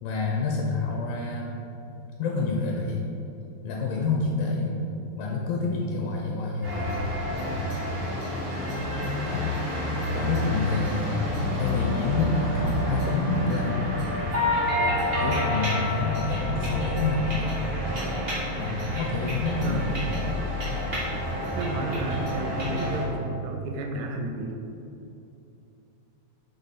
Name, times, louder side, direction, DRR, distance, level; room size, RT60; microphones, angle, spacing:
voice 1, 0.0-1.5 2.2-3.1 3.6-4.8 5.2-7.7 9.2-9.5 10.1-11.3 11.6-14.1 15.2-17.6 18.6-20.1, left 3 dB, 90° left, -2 dB, 2.1 m, -28 dB
sound 1, 6.6-23.1, left 1 dB, 30° right, 1.2 m, -28 dB
voice 2, 19.6-20.1 21.6-24.5, right 2 dB, 90° right, 3 dB, 2.1 m, -32 dB
5.5 x 4.0 x 5.6 m, 2.7 s
omnidirectional pair, 3.3 m